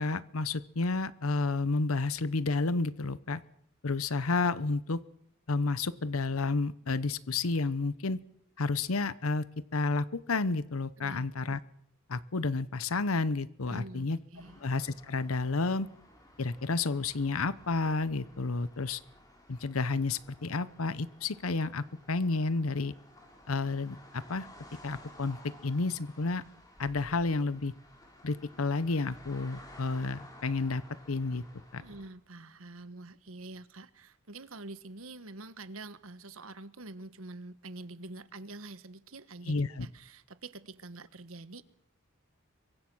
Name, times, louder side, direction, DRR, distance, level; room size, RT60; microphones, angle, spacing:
voice 1, 0.0-3.4 3.8-5.0 5.5-8.2 8.6-9.4 9.7-11.6 12.1-14.2 14.6-15.9 16.4-19.0 19.5-22.9 23.5-24.5 24.8-26.4 26.8-27.7 28.2-30.8 31.1-31.4 31.7-31.8 39.5-39.9, left 3 dB, 85° left, 16 dB, 0.9 m, -31 dB
voice 2, 11.0-11.3 13.7-14.6 31.8-41.6, right 2 dB, 75° right, 13 dB, 1.3 m, -46 dB
sound 1, 14.3-32.1, left 1 dB, 20° left, 4.8 m, -55 dB
26.0 x 23.5 x 6.3 m, 0.72 s
head